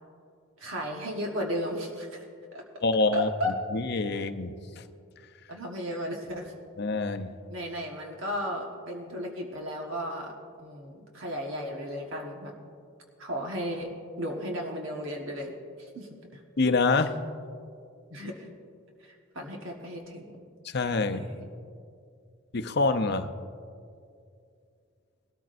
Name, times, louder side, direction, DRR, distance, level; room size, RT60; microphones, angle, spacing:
voice 1, 0.6-2.3 2.5-2.6 3.1-3.5 5.5-6.5 7.5-10.3 10.6-12.5 13.2-13.9 14.2-15.5 15.9-16.4 16.9-17.0 18.1-18.5 19.3-20.4 21.0-21.5, equal, 65° right, 0 dB, 1.3 m, -34 dB
voice 2, 2.8-3.3 3.7-4.5 6.8-7.3 16.6-17.1 20.6-21.2 22.5-23.3, left 3 dB, 50° left, 8 dB, 0.6 m, -26 dB
20.5 x 13.5 x 2.6 m, 2.4 s
head